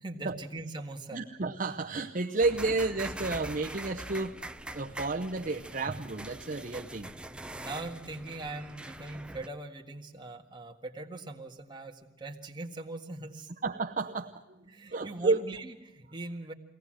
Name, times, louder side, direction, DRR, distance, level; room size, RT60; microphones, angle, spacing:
voice 1, 0.0-1.2 7.5-13.5 14.6-16.5, right 2 dB, 25° right, 2 dB, 1.8 m, -41 dB
voice 2, 1.1-4.4 4.7-7.1 13.6-15.4, right 3 dB, 45° right, 3 dB, 0.8 m, -31 dB
sound 1, 2.4-9.5, right 1 dB, 5° right, 0.6 m, -43 dB
23.0 x 17.5 x 7.6 m, 1.0 s
head